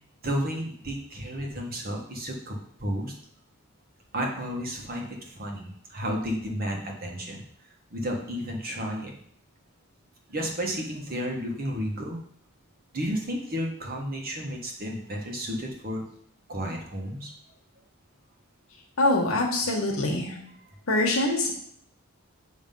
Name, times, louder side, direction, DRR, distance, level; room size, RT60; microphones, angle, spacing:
voice 1, 0.2-3.1 4.1-9.1 10.3-12.2 12.9-16.0 16.5-17.3, equal, 45° right, 1 dB, 1.3 m, -32 dB
voice 2, 19.0-20.4 20.9-21.5, left 2 dB, 80° left, -1 dB, 1.2 m, -24 dB
7.4 x 3.1 x 5.3 m, 0.63 s
head